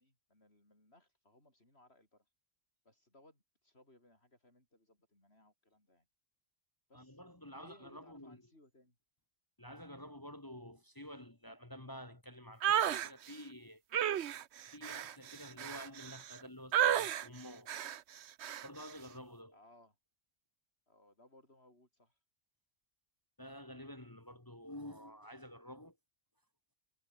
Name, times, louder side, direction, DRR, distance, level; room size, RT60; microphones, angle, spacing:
voice 1, 0.0-2.3 2.8-6.1 6.9-9.0 19.5-20.0 20.9-22.2, left 1 dB, 50° left, 8.1 m, -65 dB
voice 2, 6.9-8.4 9.6-13.8 14.7-17.7 18.6-19.5 23.4-25.9, equal, 15° left, 1.5 m, -50 dB
sound 1, 12.6-13.1 13.9-16.4 16.7-17.3 17.7-18.0 18.4-18.7, right 10 dB, 60° right, 1.0 m, -32 dB
omnidirectional pair, 1.3 m